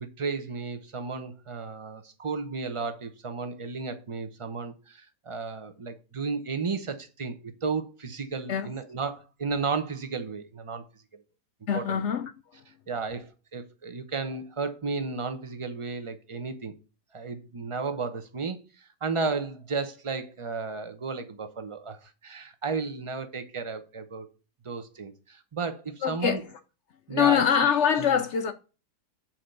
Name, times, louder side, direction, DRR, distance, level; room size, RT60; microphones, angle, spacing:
voice 1, 0.0-10.8 11.7-12.0 12.9-16.7 17.1-24.3 24.6-26.4 27.1-27.4 28.0-28.2, right 4 dB, 45° right, 0.4 m, -33 dB
voice 2, 11.7-12.3 26.0-26.4 27.1-28.5, left 8 dB, 70° left, 0.6 m, -24 dB
7.6 x 4.3 x 6.5 m
omnidirectional pair, 1.8 m